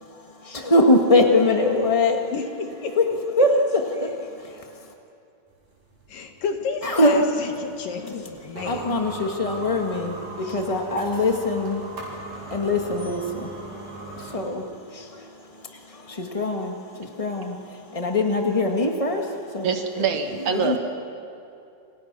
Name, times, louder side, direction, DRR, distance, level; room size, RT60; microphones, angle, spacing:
voice 1, 0.0-2.3 3.0-3.1 3.4-3.5 3.9-4.9 6.8-7.1 8.7-19.7 20.0-20.1 20.4-20.8, left 2 dB, 55° left, 2 dB, 0.4 m, -23 dB
voice 2, 2.3-3.0 6.1-9.0, left 5 dB, 80° left, 4 dB, 3.6 m, -31 dB
sound 1, 5.5-14.5, right 2 dB, 85° right, 7.8 m, -39 dB
voice 3, 19.6-20.8, right 6 dB, 65° right, 5 dB, 3.0 m, -25 dB
29.5 x 27.0 x 6.1 m, 2.6 s
omnidirectional pair, 3.8 m